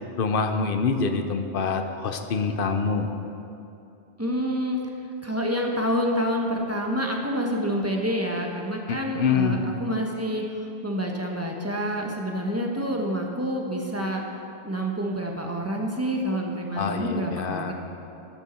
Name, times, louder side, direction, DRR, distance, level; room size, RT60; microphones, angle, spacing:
voice 1, 0.2-3.1 8.9-9.6 16.8-17.7, left 5 dB, 60° left, 7 dB, 0.9 m, -25 dB
voice 2, 4.2-4.8 5.2-14.2 14.6-17.7, equal, 15° right, 0 dB, 1.1 m, -28 dB
13.5 x 9.1 x 4.4 m, 2.8 s
omnidirectional pair, 1.1 m